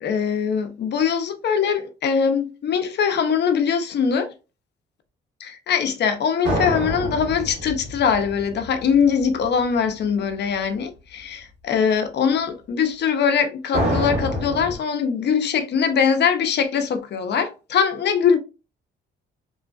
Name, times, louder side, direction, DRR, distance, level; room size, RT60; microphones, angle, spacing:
voice 1, 0.0-4.3 5.4-18.4, left 7 dB, 60° left, 0.7 m, -22 dB
sound 1, 6.4-9.5 13.7-14.8, equal, 60° right, 1.4 m, -26 dB
3.1 x 2.4 x 2.3 m
cardioid pair, 90°, 20 cm